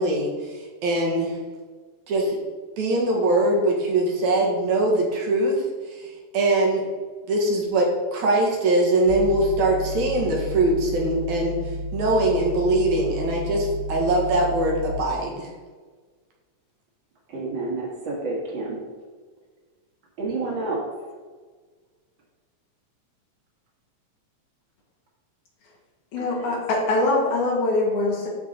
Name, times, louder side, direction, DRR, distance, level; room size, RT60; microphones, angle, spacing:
voice 1, 0.0-1.4 2.1-2.4 2.8-6.1 6.3-6.8 7.3-11.6 11.9-15.5, right 2 dB, 70° right, -1 dB, 3.0 m, -22 dB
sound 1, 9.1-14.9, equal, 30° left, 1.7 m, -32 dB
voice 2, 17.3-18.9 20.2-21.0 26.2-26.7, right 3 dB, 45° right, -2 dB, 2.0 m, -30 dB
voice 3, 26.1-28.3, left 2 dB, 75° left, -3 dB, 3.2 m, -23 dB
12.5 x 4.6 x 4.0 m, 1.4 s
omnidirectional pair, 3.4 m